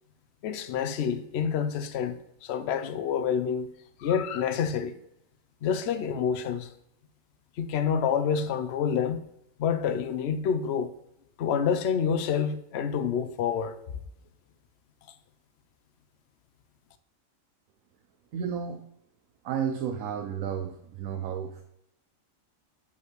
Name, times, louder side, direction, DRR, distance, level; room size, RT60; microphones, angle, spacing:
voice 1, 0.4-3.7 4.0-4.9 5.6-6.7 7.6-9.2 9.6-10.9 11.4-13.8, left 7 dB, 60° left, 0.8 m, -28 dB
voice 2, 18.3-18.8 19.4-21.6, right 8 dB, 85° right, 1.0 m, -32 dB
6.5 x 5.6 x 3.1 m
omnidirectional pair, 1.4 m